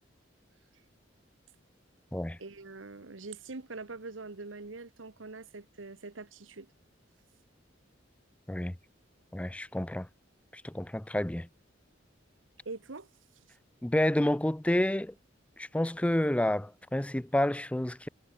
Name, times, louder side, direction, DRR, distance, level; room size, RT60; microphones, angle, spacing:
voice 1, 2.4-6.7 12.6-13.1 13.4-13.5, right 3 dB, 85° right, 1.3 m, -43 dB
voice 2, 9.3-10.1 10.5-11.5 13.8-15.1 15.6-18.1, left 1 dB, 5° left, 0.4 m, -29 dB
head